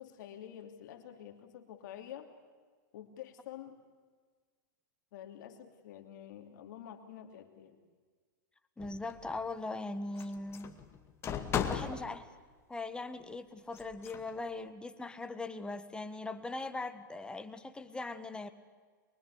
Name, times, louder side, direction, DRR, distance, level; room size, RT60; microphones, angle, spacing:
voice 1, 0.0-2.3 2.9-3.8 5.1-7.8 11.6-11.9, left 10 dB, 60° left, 6 dB, 3.0 m, -48 dB
sound 1, 8.8-9.4 10.2-12.1 13.7-14.3, left 7 dB, 25° left, 2.2 m, -36 dB
voice 2, 8.8-10.7 11.7-12.2 12.7-18.5, left 2 dB, 10° left, 10 dB, 1.5 m, -40 dB
24.0 x 23.0 x 8.4 m, 1.5 s
hypercardioid pair, 125°, 11 cm